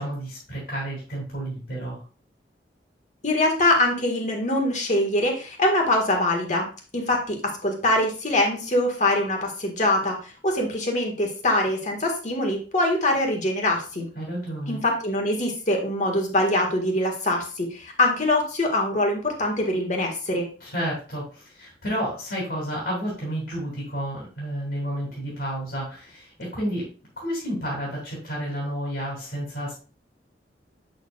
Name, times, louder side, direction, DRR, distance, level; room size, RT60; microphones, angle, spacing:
voice 1, 0.0-2.0 14.1-14.8 20.6-26.9 27.2-29.7, equal, 65° left, -4 dB, 3.0 m, -31 dB
voice 2, 3.2-6.7 6.9-14.1 14.7-20.4, left 1 dB, 45° left, 1 dB, 1.7 m, -23 dB
8.0 x 6.6 x 2.4 m, 0.37 s
head